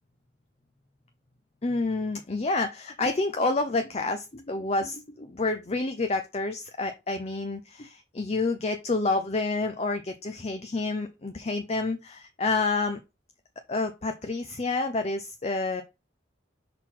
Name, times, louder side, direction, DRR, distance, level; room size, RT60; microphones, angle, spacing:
voice 1, 1.6-13.0 13.7-15.8, left 3 dB, 35° left, 7 dB, 0.6 m, -29 dB
5.9 x 4.0 x 4.5 m, 0.25 s
head